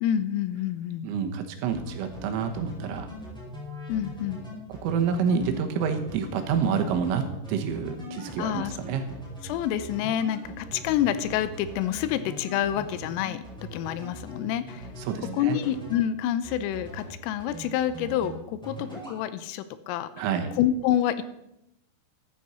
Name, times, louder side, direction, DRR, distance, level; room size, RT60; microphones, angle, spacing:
voice 1, 0.0-1.1 3.9-4.4 8.4-8.8 9.4-13.4 13.7-14.9 15.3-20.3 20.6-21.2, left 11 dB, 90° left, 13 dB, 3.3 m, -28 dB
voice 2, 1.0-3.1 4.8-9.1 15.0-15.6 20.2-20.5, right 6 dB, 80° right, 6 dB, 3.6 m, -28 dB
sound 1, 1.7-16.1 16.4-17.1 17.4-18.3 18.6-19.2, equal, ahead, 4.4 m, -41 dB
14.0 x 12.5 x 4.3 m, 0.84 s
omnidirectional pair, 5.9 m